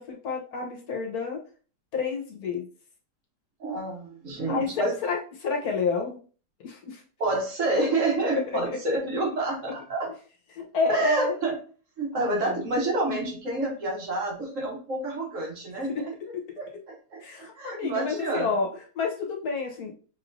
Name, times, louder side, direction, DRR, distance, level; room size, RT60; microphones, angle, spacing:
voice 1, 0.0-1.4 1.9-2.7 4.5-6.2 6.6-7.0 10.5-11.4 12.1-12.6 17.2-18.7 18.9-19.9, left 4 dB, 65° left, 0 dB, 1.3 m, -29 dB
voice 2, 3.6-5.0 7.2-10.1 10.9-11.6 12.0-18.5, right 2 dB, 55° right, 1 dB, 1.2 m, -28 dB
5.2 x 3.1 x 2.5 m, 0.40 s
omnidirectional pair, 1.9 m